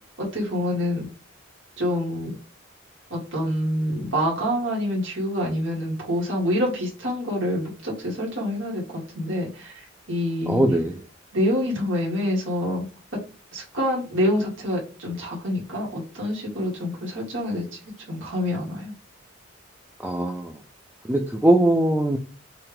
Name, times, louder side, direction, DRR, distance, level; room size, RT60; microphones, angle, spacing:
voice 1, 0.2-1.1 1.8-2.4 3.1-10.6 11.3-12.9 13.5-17.7 18.1-18.9, left 1 dB, 85° right, -4 dB, 1.9 m, -26 dB
voice 2, 10.5-11.0 20.0-20.6 21.0-22.2, right 1 dB, 10° right, 2 dB, 0.4 m, -21 dB
5.8 x 2.4 x 3.4 m, 0.35 s
head